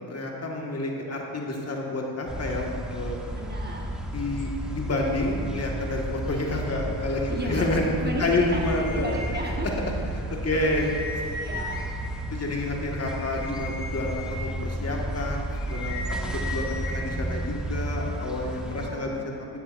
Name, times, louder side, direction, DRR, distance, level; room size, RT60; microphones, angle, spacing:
voice 1, 0.0-3.2 4.1-7.9 8.2-9.1 9.6-9.7 10.3-10.9 12.3-15.9 16.2-16.6 16.9-19.2, left 2 dB, 35° left, -1 dB, 1.7 m, -29 dB
sound 1, 2.3-18.9, right 1 dB, ahead, 1.1 m, -32 dB
voice 2, 3.3-3.9 7.3-9.7 10.5-10.6 11.3-11.8 15.9-16.6 18.6-19.1, right 1 dB, 25° right, -1 dB, 1.4 m, -35 dB
sound 2, 8.2-9.8 10.2-10.3 10.5-12.1 12.6-17.0, left 3 dB, 55° left, 2.3 m, -38 dB
12.0 x 9.5 x 2.6 m, 2.7 s
supercardioid pair, 65°, 42 cm